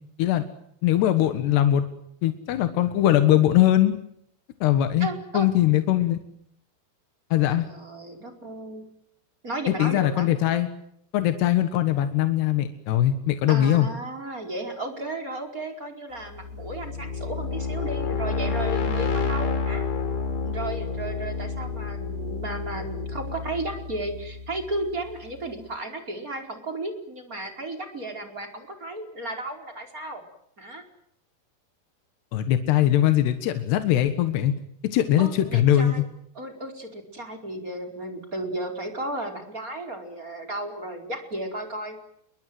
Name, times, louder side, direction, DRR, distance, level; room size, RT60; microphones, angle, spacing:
voice 1, 0.8-1.9 2.2-4.0 4.6-5.1 5.3-6.2 7.3-7.7 9.7-10.7 11.1-13.9 32.3-34.5 34.9-36.0, left 12 dB, 80° left, 9 dB, 3.6 m, -21 dB
voice 2, 5.0-5.5 7.6-8.8 9.4-10.3 13.5-19.9 20.4-30.2 30.6-30.8 35.2-36.1 36.3-42.0, right 2 dB, 20° right, 4 dB, 4.8 m, -34 dB
sound 1, 16.3-25.1, left 5 dB, 60° left, 5.1 m, -29 dB
28.5 x 23.5 x 7.8 m, 0.71 s
omnidirectional pair, 4.8 m